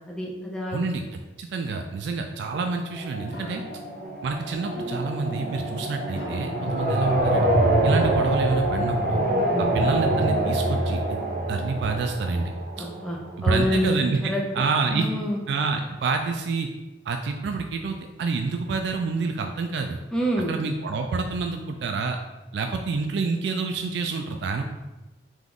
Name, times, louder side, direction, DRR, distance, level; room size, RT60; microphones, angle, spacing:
voice 1, 0.1-0.9 12.8-14.4 14.9-15.4 20.1-20.5, equal, 5° left, -2 dB, 0.5 m, -27 dB
voice 2, 0.7-3.6 4.2-7.5 7.8-9.2 9.6-11.2 11.5-12.5 13.4-15.1 15.5-16.7 17.1-20.0 20.5-22.2 22.5-24.6, right 4 dB, 70° right, 4 dB, 0.3 m, -28 dB
sound 1, 2.5-13.3, right 1 dB, 50° right, 0.7 m, -25 dB
sound 2, 3.2-8.5, equal, 55° left, 0.8 m, -41 dB
3.6 x 2.9 x 3.7 m, 1.1 s
head